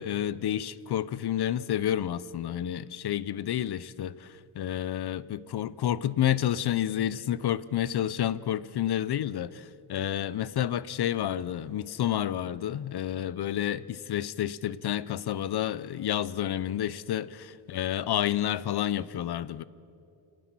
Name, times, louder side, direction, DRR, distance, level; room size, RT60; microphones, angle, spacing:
voice 1, 0.0-19.6, left 11 dB, 55° left, 0.7 m, -30 dB
27.0 x 18.5 x 6.1 m
wide cardioid pair, 145°, 48 cm